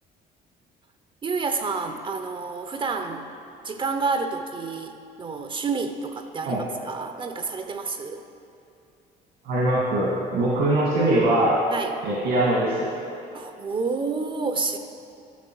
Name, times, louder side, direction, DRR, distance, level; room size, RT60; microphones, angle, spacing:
voice 1, 1.2-3.3 3.6-8.2 11.7-12.0 13.3-14.8, right 4 dB, 30° right, 7 dB, 0.5 m, -29 dB
voice 2, 9.4-11.6 12.0-12.9, right 1 dB, 85° right, -5 dB, 1.7 m, -22 dB
11.0 x 6.7 x 4.5 m, 2.6 s
cardioid pair, 110°, 17 cm